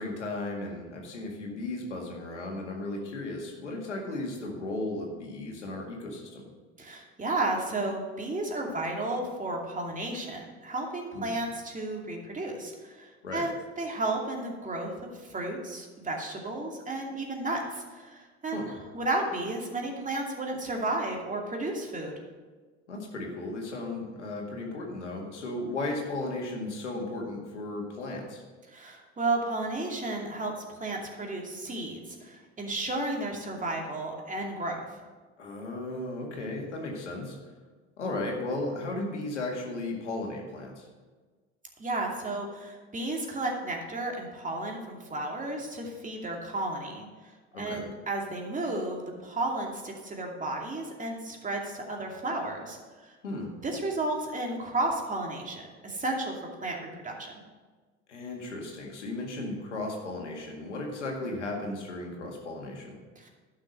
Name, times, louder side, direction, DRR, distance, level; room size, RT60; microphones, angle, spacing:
voice 1, 0.0-6.5 11.1-11.4 13.2-13.5 18.5-18.7 22.9-28.4 35.4-37.4 38.0-40.9 47.5-47.9 53.2-53.5 58.1-63.0, left 2 dB, 90° left, 0 dB, 2.0 m, -35 dB
voice 2, 6.8-14.9 15.2-22.1 28.7-34.8 41.8-53.1 53.6-56.3 56.6-57.3 63.2-63.3, right 2 dB, 20° right, 0 dB, 2.5 m, -33 dB
11.5 x 6.3 x 6.5 m, 1.4 s
hypercardioid pair, 70°, 34 cm